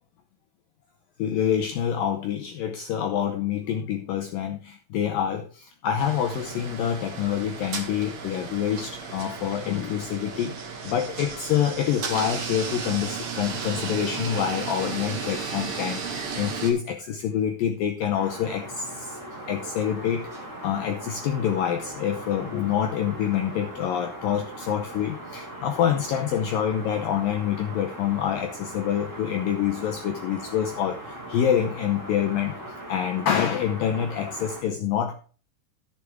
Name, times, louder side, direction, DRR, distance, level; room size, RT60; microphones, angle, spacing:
voice 1, 1.2-19.2 19.5-20.2 20.6-32.6 32.9-35.2, left 9 dB, 75° left, 5 dB, 2.1 m, -26 dB
sound 1, 6.0-16.7, right 5 dB, 50° right, 2.5 m, -34 dB
sound 2, 18.1-34.6, right 1 dB, 5° right, 3.7 m, -40 dB
13.5 x 7.4 x 3.6 m, 0.38 s
omnidirectional pair, 5.0 m